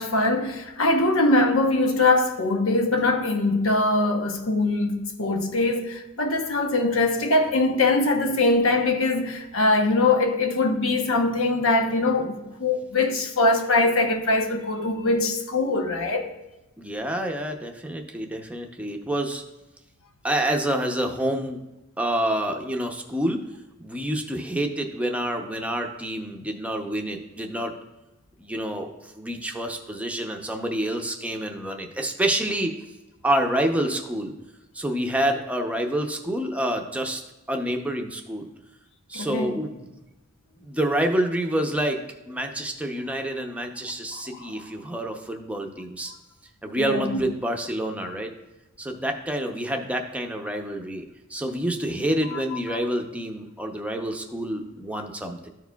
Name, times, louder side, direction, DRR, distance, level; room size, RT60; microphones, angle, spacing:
voice 1, 0.0-16.3 39.1-39.6 44.1-44.6 46.8-47.2 52.3-52.4 52.7-52.8, left 2 dB, 85° left, 0.9 m, -22 dB
voice 2, 16.8-19.4 20.2-21.6 22.0-23.4 23.8-27.7 28.4-32.7 33.2-34.3 34.7-37.2 37.5-38.5 39.1-40.0 40.6-42.0 42.3-46.1 46.6-48.3 48.8-51.0 51.3-55.5, right 1 dB, 5° right, 0.6 m, -27 dB
13.5 x 4.7 x 2.3 m
head